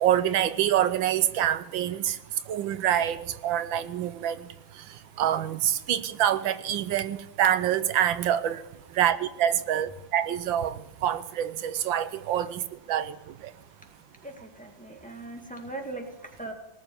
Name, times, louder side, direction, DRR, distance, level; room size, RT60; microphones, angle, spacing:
voice 1, 0.0-2.2 2.5-4.4 5.2-8.6 9.0-12.6 12.9-13.1, right 10 dB, 85° right, 13 dB, 1.5 m, -26 dB
voice 2, 14.2-16.1 16.4-16.5, right 2 dB, 5° left, 2 dB, 1.8 m, -39 dB
19.0 x 7.0 x 9.4 m, 0.87 s
omnidirectional pair, 2.1 m